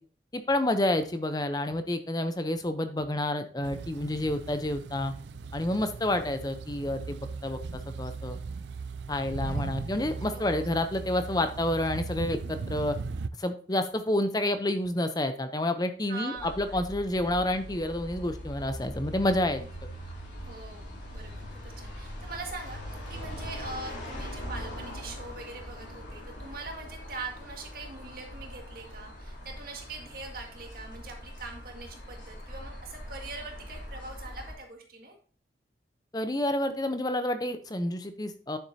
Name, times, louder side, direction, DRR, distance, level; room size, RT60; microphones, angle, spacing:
voice 1, 0.3-5.1 5.5-8.4 9.1-13.0 13.4-19.6 36.1-38.6, left 1 dB, 20° left, 9 dB, 0.7 m, -29 dB
sound 1, 3.6-13.3, right 4 dB, 75° right, 0.4 m, -38 dB
voice 2, 9.4-9.8 10.3-10.7 16.1-16.8 20.4-35.2, right 3 dB, 55° right, 2 dB, 1.9 m, -43 dB
sound 2, 16.4-34.5, equal, 80° left, 3.3 m, -41 dB
9.5 x 7.0 x 2.8 m, 0.42 s
head